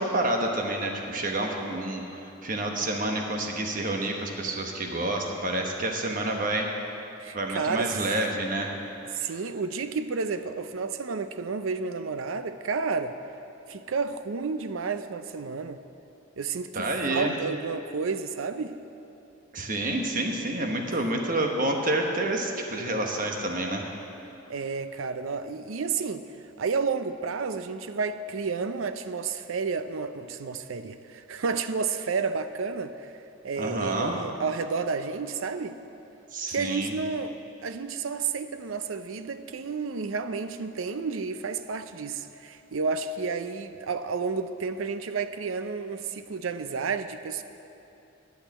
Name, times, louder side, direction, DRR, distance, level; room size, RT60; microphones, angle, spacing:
voice 1, 0.0-6.7 7.3-8.7 16.7-17.3 19.5-23.9 33.6-34.2 36.3-36.9, right 1 dB, 45° right, 2 dB, 1.2 m, -28 dB
voice 2, 7.2-8.0 9.1-13.2 13.7-15.8 16.4-18.7 20.6-20.7 24.5-26.2 26.6-33.1 33.4-35.8 36.5-47.4, right 5 dB, 90° right, 11 dB, 0.5 m, -31 dB
11.0 x 6.6 x 8.6 m, 2.9 s
head